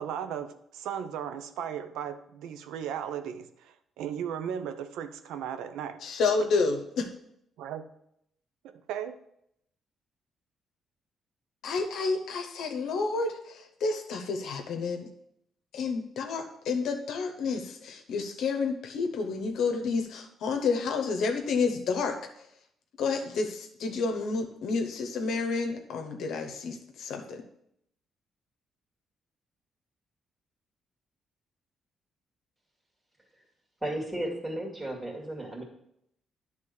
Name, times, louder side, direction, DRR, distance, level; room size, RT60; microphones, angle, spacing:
voice 1, 0.0-6.0 7.6-7.9 8.6-9.2, right 9 dB, 90° right, 0.7 m, -36 dB
voice 2, 6.0-7.1 11.6-15.1 15.7-22.5 23.0-27.4, left 4 dB, 75° left, 1.0 m, -30 dB
voice 3, 33.8-35.6, right 1 dB, 15° right, 2.4 m, -34 dB
9.7 x 3.6 x 6.5 m
cardioid pair, 90°, 0 cm